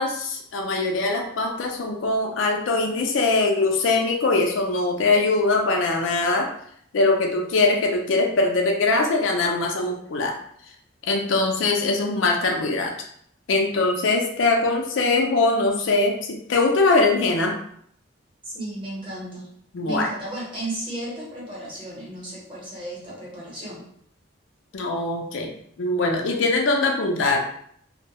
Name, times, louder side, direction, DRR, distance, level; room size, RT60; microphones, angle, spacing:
voice 1, 0.0-6.5 6.9-10.3 11.1-12.9 13.5-17.6 19.7-20.1 24.7-25.5 25.8-27.4, left 3 dB, 75° left, 2 dB, 0.4 m, -22 dB
voice 2, 18.4-19.5 19.8-23.8, right 1 dB, 25° right, -6 dB, 0.9 m, -34 dB
2.2 x 2.1 x 2.8 m, 0.67 s
head